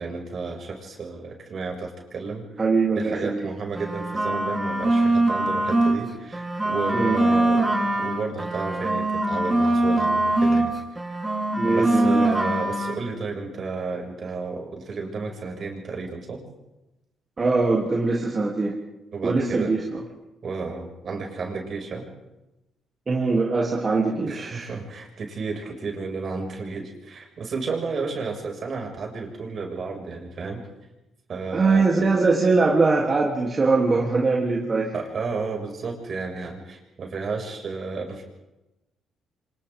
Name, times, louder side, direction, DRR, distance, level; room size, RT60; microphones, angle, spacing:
voice 1, 0.0-2.5 2.9-10.8 11.1-11.2 11.6-16.4 19.1-19.7 20.4-22.0 24.3-30.7 31.3-32.0 34.9-38.2, right 4 dB, 50° right, 1 dB, 6.4 m, -32 dB
voice 2, 2.6-3.5 6.9-7.2 11.5-12.3 17.4-18.7 19.2-20.0 23.1-24.7 31.5-34.9, right 3 dB, 35° right, -3 dB, 3.2 m, -22 dB
sound 1, 3.7-6.0 6.3-10.7 10.9-13.0, right 1 dB, 15° right, 6.6 m, -23 dB
28.0 x 26.5 x 3.8 m, 0.99 s
cardioid pair, 90°, 0 cm